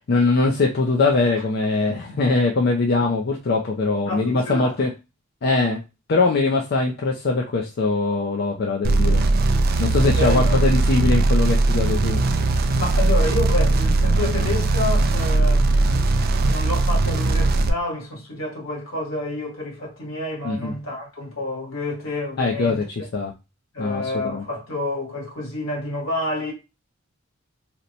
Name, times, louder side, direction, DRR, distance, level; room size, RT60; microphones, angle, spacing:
voice 1, 0.1-4.9 5.4-5.8 6.1-9.2 9.8-12.2 20.4-20.7 22.4-23.3 23.8-24.4, left 3 dB, 50° left, 0.4 m, -22 dB
voice 2, 1.9-2.2 4.0-4.7 10.0-10.6 12.8-16.1 16.4-22.8 23.7-26.5, left 1 dB, 75° left, 1.5 m, -29 dB
sound 1, 8.8-17.7, right 2 dB, 45° right, 0.3 m, -19 dB
2.9 x 2.1 x 3.9 m
head